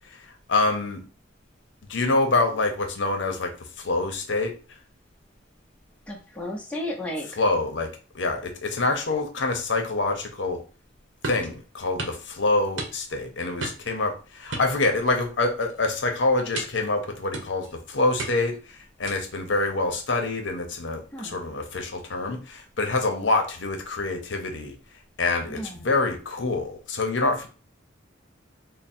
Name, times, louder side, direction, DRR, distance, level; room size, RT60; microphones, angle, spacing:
voice 1, 0.5-1.0 1.9-3.5 3.8-4.5 7.4-7.9 8.1-10.6 11.2-24.7 25.2-27.5, left 2 dB, 70° left, 4 dB, 0.7 m, -26 dB
voice 2, 6.1-7.4 21.1-21.4 25.5-25.9, left 1 dB, 5° left, -2 dB, 0.6 m, -34 dB
sound 1, 11.2-11.5 12.0-12.2 12.8-13.2 13.6-13.9 14.5-15.3 15.6-15.8 16.5-16.9 17.3-17.7 18.2-18.6 19.1-19.4, right 3 dB, 75° right, 0.9 m, -34 dB
3.5 x 2.1 x 4.2 m, 0.36 s
head